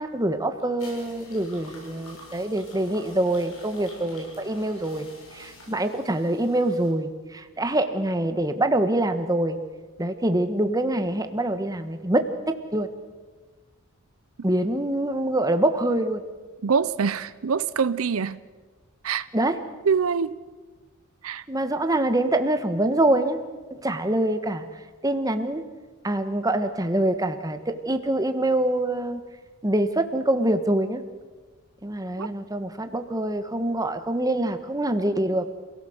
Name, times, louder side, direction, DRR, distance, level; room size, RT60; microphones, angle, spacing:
voice 1, 0.0-9.6 10.0-12.9 14.4-16.2 19.3-19.6 21.5-23.4 23.7-24.7 25.0-25.6 26.0-29.2 29.6-31.0 31.8-35.5, right 1 dB, 15° right, 8 dB, 1.5 m, -25 dB
sound 1, 0.6-6.9, left 1 dB, 85° left, 7.8 m, -47 dB
voice 2, 16.6-18.4 19.0-19.3 19.8-20.4 21.2-21.4 32.2-32.3, right 6 dB, 80° right, 16 dB, 0.6 m, -24 dB
27.5 x 17.5 x 8.0 m, 1.3 s
head